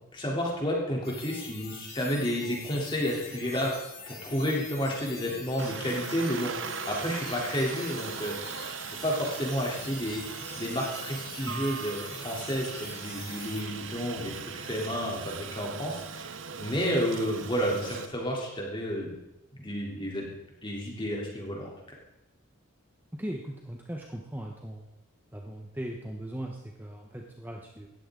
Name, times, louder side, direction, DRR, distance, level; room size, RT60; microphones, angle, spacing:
voice 1, 0.1-3.7 4.1-8.3 8.6-8.7 9.0-10.2 10.6-19.1 19.5-20.2 20.6-21.7, equal, 25° left, -2 dB, 3.5 m, -31 dB
sound 1, 1.0-13.6, left 5 dB, 50° left, 5.9 m, -45 dB
Aircraft, 5.6-18.1, right 6 dB, 65° right, 0.9 m, -39 dB
voice 2, 23.1-24.9 25.3-27.9, right 1 dB, 10° right, 1 dB, 1.0 m, -38 dB
18.0 x 14.0 x 3.9 m, 0.91 s
head